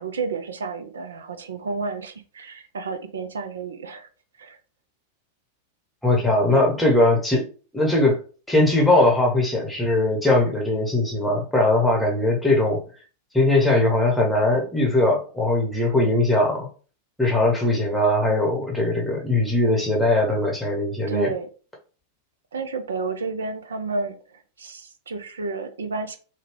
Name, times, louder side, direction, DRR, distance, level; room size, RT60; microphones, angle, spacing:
voice 1, 0.0-4.1 4.4-4.6 6.5-6.6 21.1-21.5 22.5-26.2, right 4 dB, 70° right, 8 dB, 0.5 m, -31 dB
voice 2, 6.0-7.5 7.7-8.2 8.5-12.8 13.3-16.7 17.2-21.3, left 2 dB, 5° left, -1 dB, 0.9 m, -20 dB
3.2 x 2.3 x 3.4 m, 0.37 s
figure-of-eight pair, 90°, 0 cm